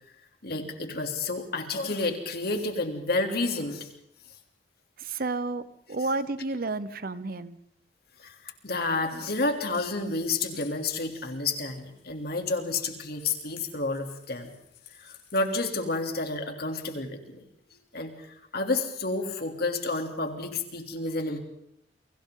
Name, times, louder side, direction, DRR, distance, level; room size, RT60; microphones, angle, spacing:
voice 1, 0.4-3.9 4.3-4.4 8.2-14.5 15.0-17.4 17.9-21.4, left 3 dB, 55° left, 4 dB, 3.2 m, -30 dB
voice 2, 5.0-7.6, right 3 dB, 55° right, 14 dB, 0.9 m, -31 dB
sound 1, 8.8-16.3, left 10 dB, 80° left, 6.1 m, -51 dB
30.0 x 23.5 x 3.9 m, 0.76 s
head